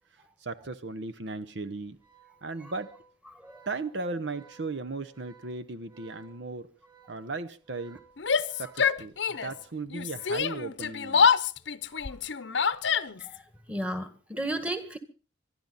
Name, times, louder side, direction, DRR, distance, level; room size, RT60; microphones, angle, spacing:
voice 1, 0.4-2.0 2.4-3.0 3.7-6.7 7.1-8.0 8.6-11.3, right 3 dB, 65° right, 11 dB, 0.8 m, -36 dB
Organ, 1.9-11.0, right 7 dB, 20° right, 6.7 m, -58 dB
voice 2, 3.3-3.6 12.6-12.8 13.2-13.4 13.7-15.0, right 1 dB, 5° right, 9 dB, 1.7 m, -34 dB
Yell, 8.2-9.6 9.9-13.4, left 6 dB, 65° left, 0.8 m, -26 dB
25.0 x 12.0 x 4.1 m, 0.36 s
head